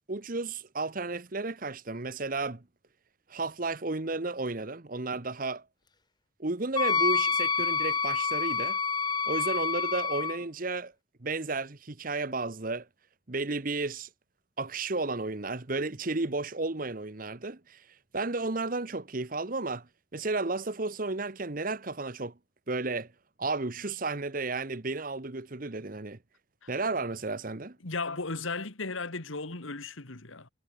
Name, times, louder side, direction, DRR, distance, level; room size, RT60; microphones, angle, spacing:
voice 1, 0.1-2.6 3.3-5.6 6.4-8.8 9.3-10.9 11.2-12.9 13.3-14.1 14.6-17.8 18.1-22.3 22.7-23.1 23.4-26.2 26.7-27.8, right 3 dB, 45° right, 1.1 m, -33 dB
Wind instrument woodwind instrument, 6.8-10.4, left 5 dB, 20° left, 0.7 m, -28 dB
voice 2, 27.8-30.5, left 3 dB, 80° left, 2.2 m, -35 dB
head